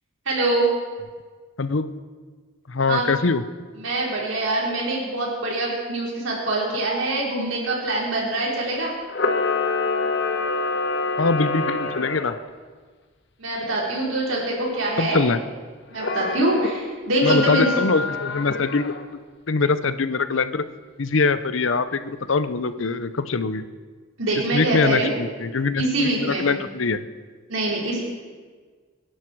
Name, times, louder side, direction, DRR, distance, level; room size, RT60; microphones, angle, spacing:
voice 1, 0.2-0.7 2.9-3.1 3.8-8.9 13.4-15.3 15.9-17.7 24.2-25.1 25.8-26.5 27.5-28.0, right 2 dB, 75° right, -4 dB, 4.8 m, -24 dB
voice 2, 2.7-3.4 11.2-12.3 15.0-15.4 17.2-19.2 19.5-20.6 21.0-23.6 24.5-27.0, left 4 dB, 70° left, 13 dB, 0.7 m, -23 dB
Camera, 9.1-12.4 16.0-16.7 17.2-19.0, left 3 dB, 55° left, 1.2 m, -26 dB
24.0 x 11.0 x 4.7 m, 1.5 s
head